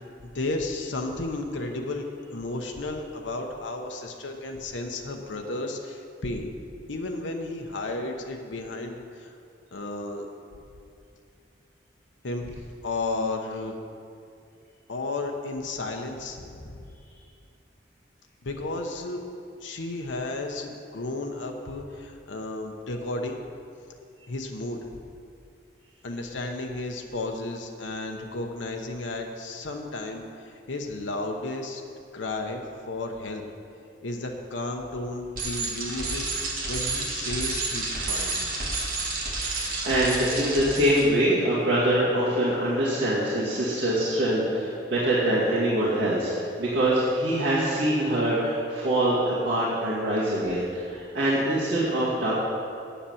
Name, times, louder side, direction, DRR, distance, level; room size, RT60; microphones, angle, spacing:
voice 1, 0.2-2.0 2.3-6.5 6.9-9.3 9.7-10.3 12.2-13.7 14.9-16.8 18.4-19.2 19.6-23.4 24.3-24.8 26.0-31.8 32.1-33.4 34.0-36.3 36.7-38.5, left 2 dB, 90° left, 2 dB, 0.9 m, -33 dB
Bicycle, 35.4-41.0, right 3 dB, 50° right, 1.8 m, -30 dB
voice 2, 39.4-52.3, right 1 dB, 65° right, -10 dB, 2.2 m, -24 dB
8.9 x 7.1 x 7.1 m, 2.6 s
head